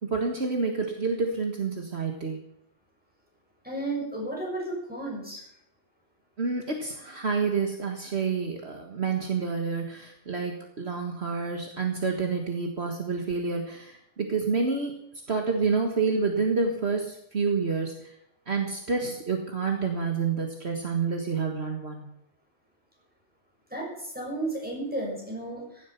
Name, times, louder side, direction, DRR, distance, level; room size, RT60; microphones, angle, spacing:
voice 1, 0.0-2.4 6.4-14.9 15.3-18.1 18.5-22.1, right 4 dB, 55° right, 2 dB, 1.9 m, -28 dB
voice 2, 3.6-5.4 23.7-25.9, right 2 dB, 5° right, -2 dB, 6.8 m, -33 dB
16.0 x 12.0 x 5.8 m, 0.74 s
omnidirectional pair, 1.3 m